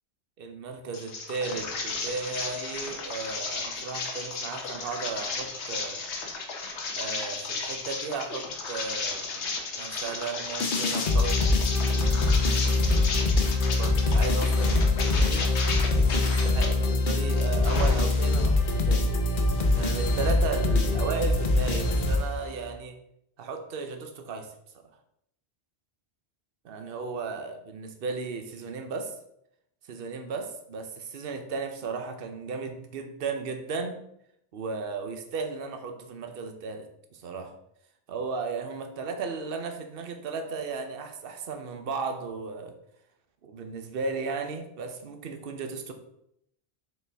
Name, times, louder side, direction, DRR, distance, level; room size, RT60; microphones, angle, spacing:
voice 1, 0.4-6.0 7.0-11.4 11.7-13.2 13.7-15.5 16.0-19.2 19.8-23.0 23.4-24.9 26.6-29.1 29.9-34.0 34.5-36.9 37.1-37.5 38.1-42.7 43.4-45.9, right 4 dB, 60° right, 6 dB, 0.9 m, -35 dB
sound 1, 0.9-16.7 17.1-18.4, left 4 dB, 75° left, 1.2 m, -34 dB
sound 2, 10.6-22.7, left 2 dB, 50° left, 0.9 m, -24 dB
6.8 x 4.2 x 3.4 m, 0.76 s
omnidirectional pair, 1.2 m